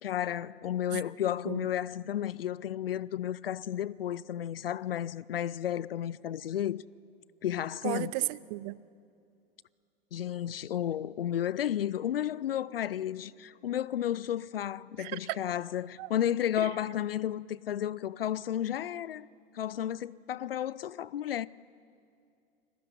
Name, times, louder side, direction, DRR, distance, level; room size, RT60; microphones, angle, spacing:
voice 1, 0.0-6.8 7.4-8.1 10.1-19.3 19.5-21.5, left 11 dB, 70° left, 0.6 m, -32 dB
voice 2, 7.8-8.8 15.0-15.4 16.0-16.1 16.6-16.7, right 22 dB, 45° right, 0.7 m, -34 dB
29.0 x 19.5 x 9.5 m
figure-of-eight pair, 85°, 30 cm